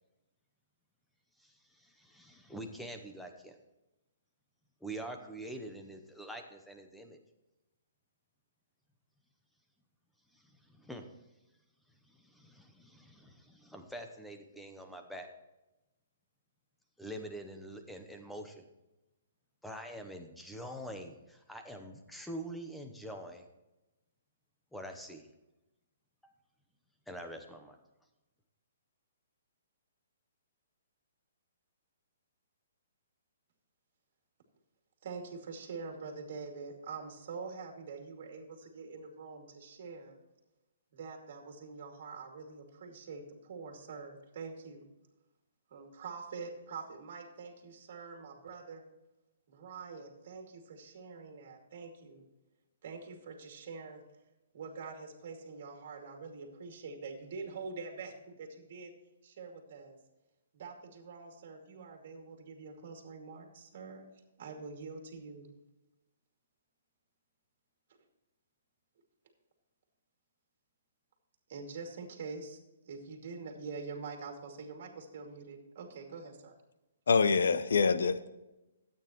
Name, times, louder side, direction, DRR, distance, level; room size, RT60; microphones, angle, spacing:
voice 1, 1.4-3.5 4.8-7.2 10.3-11.1 12.0-15.3 17.0-18.6 19.6-23.4 24.7-25.3 26.2-26.3 27.1-27.8, right 1 dB, ahead, 0.8 m, -45 dB
voice 2, 35.0-40.2 40.9-44.8 45.7-48.8 49.5-52.2 52.8-54.1 54.5-58.9 59.2-60.0 60.5-64.1 64.4-65.5 71.5-72.6 72.8-76.6, right 4 dB, 40° right, 2.4 m, -45 dB
voice 3, 77.1-78.3, left 5 dB, 75° left, 0.8 m, -26 dB
13.5 x 9.0 x 3.0 m
hypercardioid pair, 175°, 0 cm